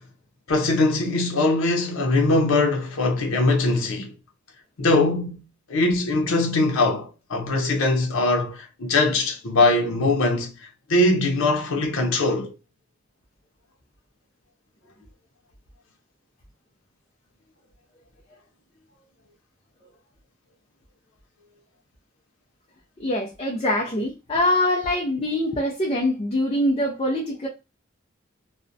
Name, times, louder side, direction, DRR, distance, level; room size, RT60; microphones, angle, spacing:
voice 1, 0.5-4.1 4.8-5.4 5.7-10.5 10.9-12.5, left 2 dB, 85° left, 0.6 m, -21 dB
voice 2, 23.0-27.5, left 1 dB, 30° left, 0.4 m, -24 dB
2.4 x 2.0 x 2.5 m
head